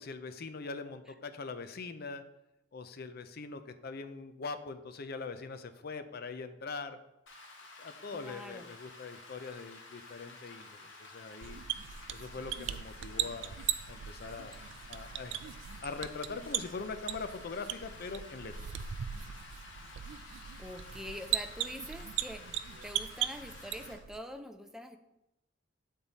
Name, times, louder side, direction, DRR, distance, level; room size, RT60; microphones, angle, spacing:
voice 1, 0.1-2.2 2.7-7.0 7.8-11.6 12.1-13.6 13.9-14.6 14.9-18.5, left 4 dB, 55° left, 9 dB, 0.5 m, -42 dB
Rain, 7.3-23.9, left 3 dB, 80° left, 1.4 m, -52 dB
voice 2, 8.1-8.7 20.6-25.0, equal, 5° right, 6 dB, 0.4 m, -45 dB
sound 1, 11.4-24.2, right 10 dB, 70° right, 0.4 m, -39 dB
8.8 x 3.6 x 4.0 m, 0.90 s
head